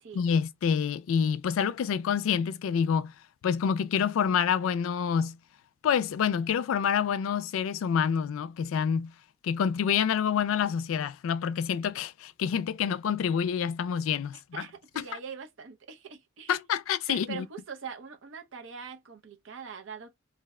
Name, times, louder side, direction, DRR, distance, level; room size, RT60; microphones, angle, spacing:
voice 1, 0.1-3.1 3.4-5.4 5.8-9.1 9.4-14.6 15.0-15.1 16.5-17.5, left 7 dB, 85° left, 0.3 m, -27 dB
voice 2, 14.5-16.5 17.1-20.2, right 6 dB, 65° right, 0.6 m, -42 dB
2.6 x 2.1 x 3.5 m
head